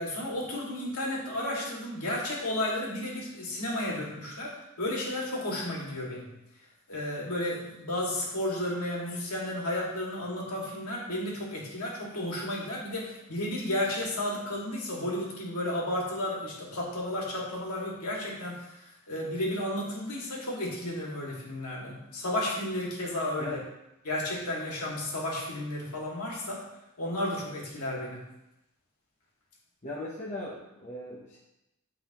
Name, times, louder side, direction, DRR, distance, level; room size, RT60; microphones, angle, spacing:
voice 1, 0.0-6.3 6.9-23.6 24.0-26.6 27.0-28.3, left 1 dB, 90° left, -3 dB, 2.1 m, -33 dB
voice 2, 29.8-31.4, left 1 dB, 30° left, -5 dB, 0.9 m, -38 dB
12.0 x 4.1 x 3.0 m, 0.88 s
head